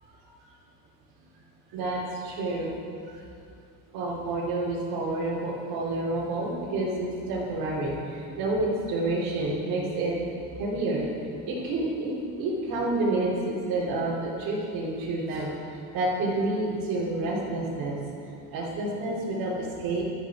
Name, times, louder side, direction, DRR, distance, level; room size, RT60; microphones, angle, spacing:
voice 1, 1.7-2.8 3.0-3.2 3.9-10.2 10.6-11.0 11.5-18.0 18.5-20.0, right 2 dB, 65° right, -6 dB, 3.3 m, -29 dB
16.5 x 13.0 x 4.9 m, 2.5 s
cardioid pair, 165°, 39 cm